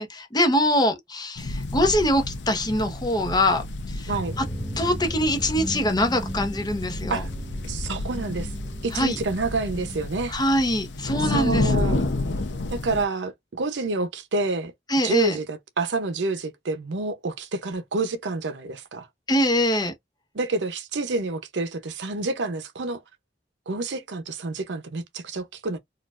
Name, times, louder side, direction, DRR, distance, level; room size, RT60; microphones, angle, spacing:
voice 1, 0.0-4.1 4.8-7.2 8.9-9.2 10.3-12.1 14.9-15.4 19.3-19.9, left 1 dB, 25° left, 0.8 m, -23 dB
sound 1, 1.4-13.1, left 2 dB, 85° left, 0.7 m, -31 dB
sound 2, 4.1-10.1, equal, ahead, 1.3 m, -36 dB
voice 2, 7.6-8.5 8.8-10.4 11.3-12.0 12.7-14.7 15.0-19.1 20.3-23.0 23.7-25.8, right 3 dB, 80° right, 0.7 m, -28 dB
4.1 x 2.4 x 2.4 m
head